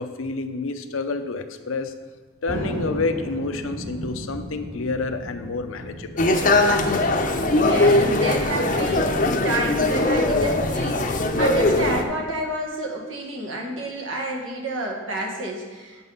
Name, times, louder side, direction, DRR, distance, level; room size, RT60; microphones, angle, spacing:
voice 1, 0.0-1.9 2.4-6.2, left 3 dB, 90° left, 8 dB, 0.6 m, -29 dB
Thunder, 2.5-9.3, right 1 dB, 50° right, 1.1 m, -36 dB
sound 1, 6.2-12.0, left 2 dB, 40° left, 0.6 m, -20 dB
voice 2, 7.5-16.0, right 2 dB, 80° right, -1 dB, 1.5 m, -30 dB
7.7 x 5.4 x 5.5 m, 1.3 s
head